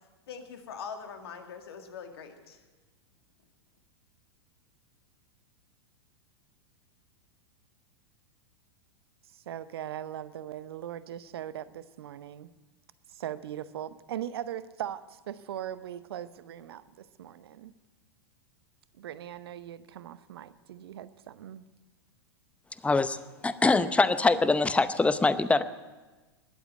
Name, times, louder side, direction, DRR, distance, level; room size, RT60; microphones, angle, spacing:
voice 1, 0.3-2.6, left 6 dB, 70° left, 5 dB, 2.1 m, -42 dB
voice 2, 9.5-12.5 13.1-17.7 19.0-21.6, right 11 dB, 70° right, 15 dB, 0.8 m, -40 dB
voice 3, 22.8-25.6, left 3 dB, 10° left, 13 dB, 0.7 m, -24 dB
20.5 x 8.1 x 8.3 m, 1.2 s
hypercardioid pair, 95°, 14 cm